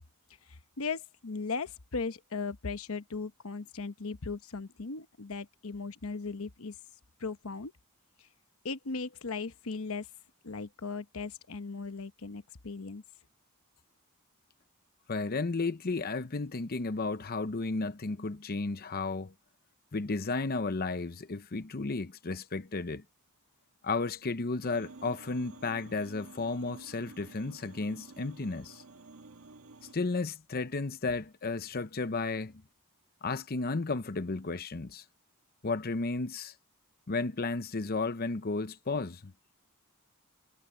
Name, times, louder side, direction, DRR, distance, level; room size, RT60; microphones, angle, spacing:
voice 1, 0.8-6.7 7.2-7.7 8.6-10.1 10.4-13.0, left 4 dB, 70° left, 1.0 m, -37 dB
voice 2, 15.1-19.3 19.9-23.0 23.8-28.8 29.9-32.5 33.2-35.0 35.6-36.5 37.1-39.3, left 3 dB, 45° left, 0.8 m, -33 dB
sound 1, 24.6-29.9, right 3 dB, 80° right, 1.5 m, -51 dB
head